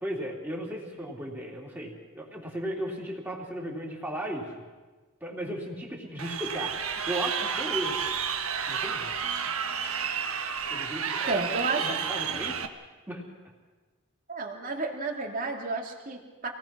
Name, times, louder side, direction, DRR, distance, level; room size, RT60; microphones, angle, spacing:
voice 1, 0.0-4.5 5.2-8.0 8.7-9.1 10.7-12.6 13.1-13.2, equal, 10° right, -2 dB, 3.4 m, -36 dB
Crowd, 6.2-12.7, right 7 dB, 75° right, 1.4 m, -31 dB
voice 2, 11.3-12.0 14.3-16.5, right 3 dB, 40° right, 2 dB, 2.6 m, -31 dB
27.5 x 18.5 x 6.1 m, 1.3 s
head